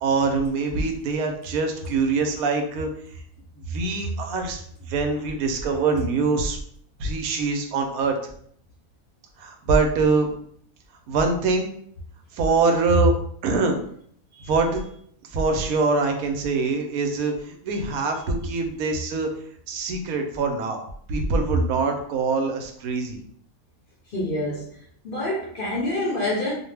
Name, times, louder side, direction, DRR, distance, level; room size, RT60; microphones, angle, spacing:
voice 1, 0.0-2.9 3.7-6.6 7.0-8.2 9.4-10.3 11.1-11.7 12.3-13.1 13.4-13.8 14.5-14.8 15.3-19.3 19.7-23.2, right 4 dB, 90° right, 4 dB, 1.0 m, -24 dB
voice 2, 24.1-26.5, left 1 dB, 55° left, -4 dB, 0.6 m, -27 dB
2.5 x 2.1 x 3.2 m, 0.63 s
omnidirectional pair, 1.5 m